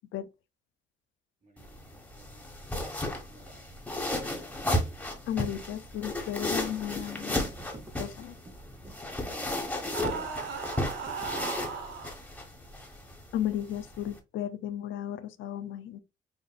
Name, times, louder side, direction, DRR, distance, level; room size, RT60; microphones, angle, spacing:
voice 1, 1.4-2.5 3.3-3.7, right 2 dB, 40° right, 2.1 m, -59 dB
sound 1, 1.6-14.2, left 1 dB, 5° left, 1.3 m, -34 dB
sound 2, 3.4-11.5, right 2 dB, 20° right, 1.0 m, -50 dB
voice 2, 5.3-7.4 8.0-8.3 13.3-16.0, left 11 dB, 75° left, 0.5 m, -34 dB
sound 3, 9.9-12.1, right 6 dB, 80° right, 1.5 m, -36 dB
6.3 x 2.5 x 2.4 m
cardioid pair, 90°, 20 cm